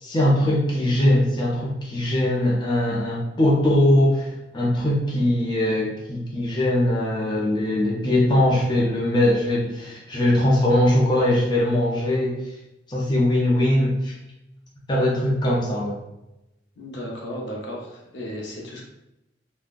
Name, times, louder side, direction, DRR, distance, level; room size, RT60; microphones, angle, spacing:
voice 1, 0.0-4.3 4.5-12.4 12.9-14.1 14.9-16.0, left 1 dB, 25° left, -5 dB, 0.6 m, -21 dB
voice 2, 16.8-18.8, equal, 75° left, -2 dB, 0.7 m, -34 dB
3.6 x 2.2 x 2.5 m, 0.90 s
head